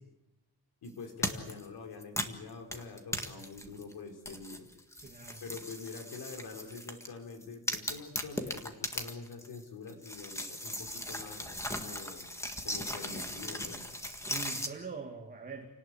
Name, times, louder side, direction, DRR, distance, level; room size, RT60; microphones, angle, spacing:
voice 1, 0.8-4.7 5.4-12.3 12.6-13.8, left 4 dB, 75° left, 4 dB, 4.4 m, -45 dB
sound 1, 1.2-1.7 2.0-3.9 4.3-7.1 7.4-9.6 9.9-14.7, left 1 dB, 5° left, 1.7 m, -38 dB
voice 2, 5.0-5.4 14.1-15.7, right 4 dB, 25° right, 2 dB, 2.1 m, -43 dB
29.0 x 18.5 x 8.4 m, 1.0 s
wide cardioid pair, 175°, 38 cm